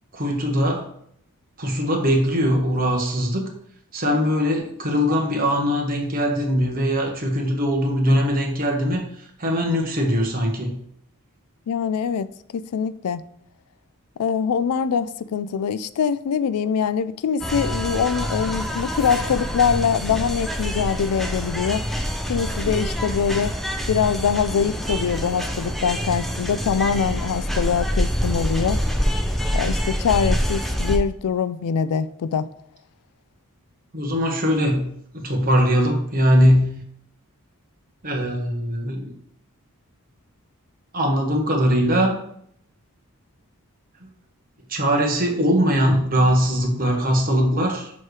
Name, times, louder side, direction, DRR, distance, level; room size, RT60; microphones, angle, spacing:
voice 1, 0.1-0.9 1.6-3.5 3.9-9.1 9.4-10.8 33.9-36.8 38.0-39.1 40.9-42.2 44.0-44.1 44.7-47.9, equal, 40° right, 1.1 m, -21 dB
voice 2, 11.7-12.3 12.5-13.2 14.2-21.8 22.3-23.5 23.9-28.8 29.5-32.5, left 7 dB, 85° left, 0.4 m, -23 dB
sound 1, 17.4-31.0, equal, ahead, 0.5 m, -26 dB
7.4 x 3.1 x 4.7 m
head